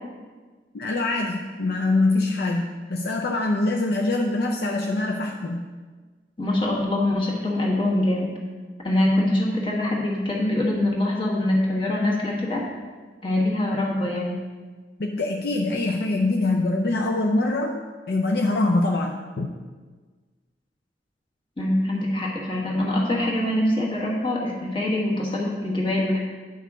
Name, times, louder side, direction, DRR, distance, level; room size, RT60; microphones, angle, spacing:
voice 1, 0.7-5.6 15.0-17.8 18.1-19.5, left 2 dB, 60° left, 2 dB, 0.5 m, -24 dB
voice 2, 6.4-8.3 8.8-12.6 13.2-14.4 21.6-26.2, left 1 dB, 30° left, -3 dB, 1.5 m, -24 dB
9.2 x 5.6 x 3.6 m, 1.4 s
head